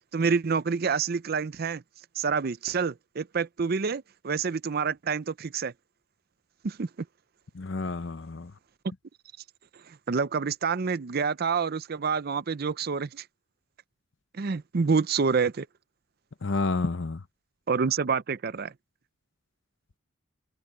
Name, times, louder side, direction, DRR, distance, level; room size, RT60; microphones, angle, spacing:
voice 1, 0.1-1.8 2.2-5.7 6.6-6.9 9.9-13.2 14.3-15.7 17.7-18.7, right 5 dB, 50° right, 0.5 m, -27 dB
voice 2, 7.5-8.5 16.4-17.2, left 3 dB, 65° left, 0.8 m, -30 dB
head